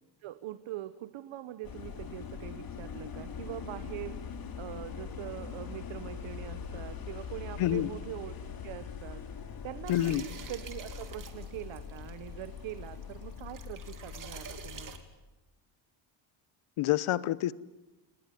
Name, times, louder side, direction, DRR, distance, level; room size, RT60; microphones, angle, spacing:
voice 1, 0.2-4.2 4.6-8.3 8.6-9.2 9.6-15.0, right 13 dB, 70° right, 12 dB, 1.3 m, -43 dB
sound 1, 1.6-15.0, left 7 dB, 45° left, 3.3 m, -42 dB
voice 2, 7.6-7.9 9.9-10.2 16.8-17.5, left 14 dB, 85° left, 18 dB, 1.1 m, -27 dB
sound 2, 9.9-15.0, right 7 dB, 40° right, 2.9 m, -48 dB
29.0 x 20.0 x 9.4 m, 1.0 s
cardioid pair, 130°, 49 cm